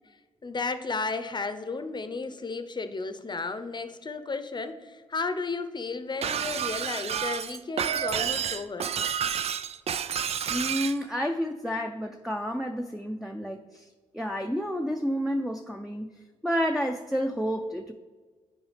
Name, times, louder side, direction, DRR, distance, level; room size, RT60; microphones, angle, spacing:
voice 1, 0.4-8.9, left 4 dB, 35° left, 10 dB, 0.7 m, -33 dB
Shatter, 6.2-11.0, right 8 dB, 50° right, 0.4 m, -30 dB
voice 2, 10.5-13.9 14.1-16.1 16.4-17.9, equal, ahead, 3 dB, 0.6 m, -30 dB
10.5 x 4.8 x 3.3 m, 1.4 s
hypercardioid pair, 40°, 14 cm